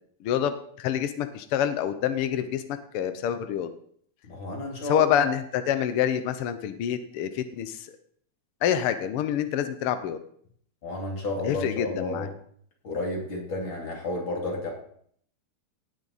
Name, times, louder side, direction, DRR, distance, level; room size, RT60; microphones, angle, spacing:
voice 1, 0.2-3.7 4.8-7.9 8.6-10.2 11.4-12.3, left 9 dB, 80° left, 10 dB, 1.2 m, -27 dB
voice 2, 4.3-5.2 10.8-12.3 12.8-14.7, left 2 dB, 40° left, 0 dB, 3.4 m, -31 dB
17.5 x 8.5 x 4.1 m, 0.63 s
omnidirectional pair, 3.5 m